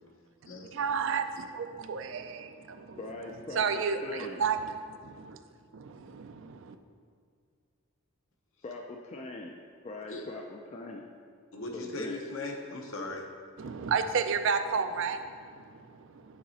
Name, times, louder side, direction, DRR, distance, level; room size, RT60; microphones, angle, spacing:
voice 1, 0.7-3.0 3.5-5.4 5.7-6.8 13.6-16.4, right 6 dB, 60° right, 8 dB, 0.4 m, -32 dB
voice 2, 3.0-4.4 8.6-9.6 9.8-11.1 11.7-12.2, left 2 dB, 30° left, 1 dB, 0.3 m, -42 dB
voice 3, 11.5-13.2, left 2 dB, 65° left, 2 dB, 0.8 m, -38 dB
8.6 x 4.0 x 4.1 m, 2.2 s
head